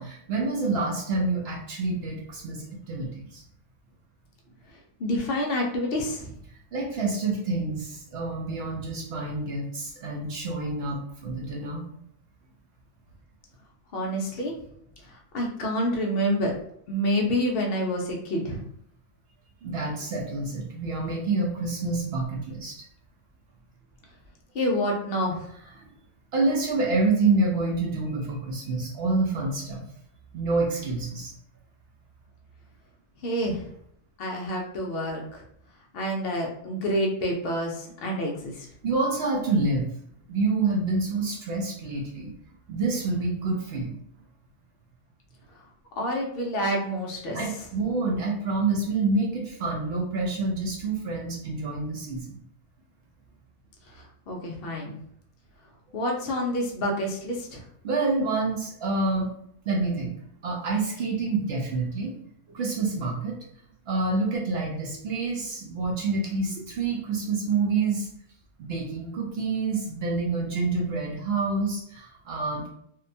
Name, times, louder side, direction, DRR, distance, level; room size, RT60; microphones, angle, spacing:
voice 1, 0.0-3.4 6.7-11.9 19.6-22.8 25.8-25.9 26.3-29.8 30.3-31.3 38.8-39.9 40.3-42.3 42.7-44.0 47.3-52.4 57.8-59.3 59.7-60.1 60.4-62.2 62.5-63.4 63.9-68.1 68.6-72.7, right 3 dB, 65° right, -1 dB, 0.6 m, -27 dB
voice 2, 4.7-6.4 13.9-14.6 15.0-16.5 16.9-18.6 24.5-25.5 33.2-33.7 34.2-35.4 35.9-38.7 45.5-45.6 46.0-47.6 53.9-55.0 55.9-57.7, equal, 80° left, 0 dB, 0.5 m, -28 dB
2.7 x 2.1 x 2.6 m, 0.69 s
omnidirectional pair, 1.6 m